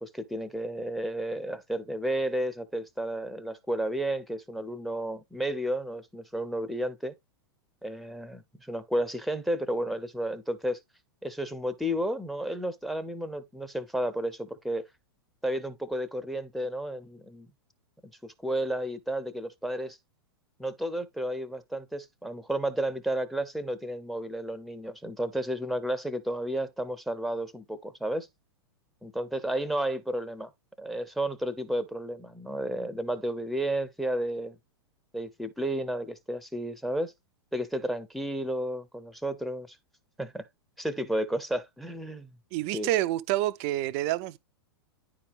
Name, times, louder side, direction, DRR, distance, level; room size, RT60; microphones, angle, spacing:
voice 1, 0.0-7.1 7.8-10.8 11.2-14.8 15.4-17.5 18.0-20.0 20.6-28.3 29.0-30.5 30.8-34.6 35.1-37.1 37.5-39.8 40.2-40.5 40.8-42.3 42.7-42.9, right 1 dB, ahead, 0.8 m, -32 dB
voice 2, 42.5-44.4, right 15 dB, 35° right, 0.5 m, -28 dB
9.9 x 4.6 x 3.4 m
figure-of-eight pair, 100°, 13 cm